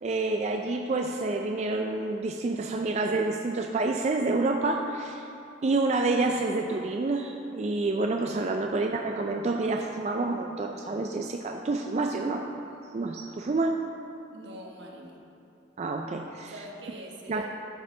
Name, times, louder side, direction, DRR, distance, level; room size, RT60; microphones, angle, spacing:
voice 1, 0.0-5.3 5.6-12.5 12.9-13.8 15.8-16.5 17.3-17.4, right 3 dB, 35° right, 3 dB, 0.3 m, -28 dB
voice 2, 11.9-12.2 13.2-13.5 14.3-15.2 16.4-17.5, right 1 dB, 80° right, 0 dB, 1.2 m, -45 dB
12.5 x 5.7 x 3.8 m, 2.7 s
head